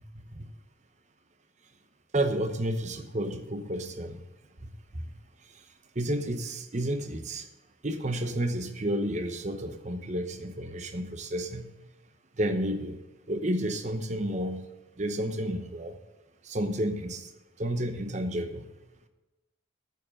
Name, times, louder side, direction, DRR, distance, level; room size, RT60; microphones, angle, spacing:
voice 1, 2.1-4.2 4.9-5.1 5.9-7.5 7.8-11.7 12.4-13.0 13.3-14.7 15.0-16.0 16.4-17.3 17.6-18.7, right 1 dB, 35° right, 0.9 m, -31 dB
9.4 x 7.5 x 6.5 m
head